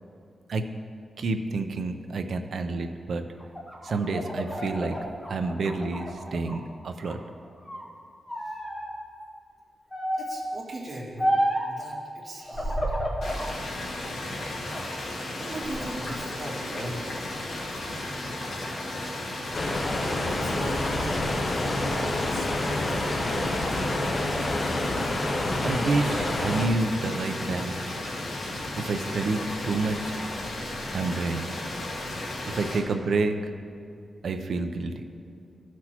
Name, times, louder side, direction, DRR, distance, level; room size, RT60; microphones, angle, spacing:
voice 1, 1.2-3.2 3.8-5.0 5.3-7.2 25.6-28.0 28.8-30.1 30.9-31.4 32.5-33.4 34.2-34.9, right 3 dB, 65° right, 7 dB, 0.5 m, -28 dB
sound 1, 3.4-6.6 7.0-7.9 8.3-8.9 9.9-10.4 11.2-11.7 12.5-13.5 14.0-15.0 15.4-16.1, equal, 10° left, 1.1 m, -31 dB
voice 2, 10.2-11.3 11.6-12.8 15.4-17.1 20.3-22.5, right 1 dB, 35° right, -8 dB, 2.0 m, -38 dB
sound 2, 13.2-32.8, left 1 dB, 75° left, 1.4 m, -34 dB
sound 3, 19.5-26.7, left 2 dB, 35° left, 0.7 m, -28 dB
14.5 x 6.0 x 3.0 m, 2.4 s
wide cardioid pair, 165°, 0 cm